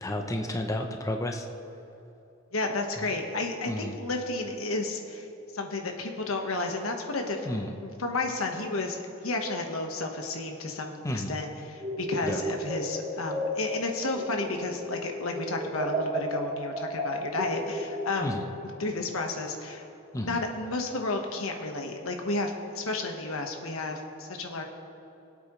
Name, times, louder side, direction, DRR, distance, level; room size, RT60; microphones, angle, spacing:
voice 1, 0.0-1.4 3.7-4.0 7.4-7.7 11.0-11.4 12.2-12.4 18.2-18.5 20.1-20.4, left 1 dB, 15° left, 3 dB, 0.7 m, -31 dB
voice 2, 2.5-5.3 5.5-18.4 18.8-19.9 20.2-24.6, left 2 dB, 85° left, 3 dB, 1.3 m, -32 dB
sound 1, 11.8-15.0 15.3-18.3, equal, 25° right, 1.7 m, -33 dB
21.5 x 8.4 x 3.2 m, 3.0 s
head